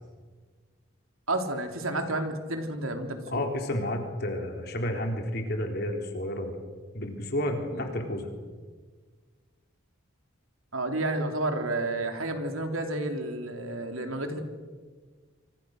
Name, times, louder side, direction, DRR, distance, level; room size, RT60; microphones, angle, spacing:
voice 1, 1.3-3.4 7.7-7.8 10.7-14.4, right 2 dB, 85° right, 5 dB, 3.5 m, -31 dB
voice 2, 3.3-6.6 6.9-8.3, left 1 dB, 50° left, 3 dB, 3.8 m, -31 dB
27.5 x 25.5 x 6.6 m, 1.5 s
head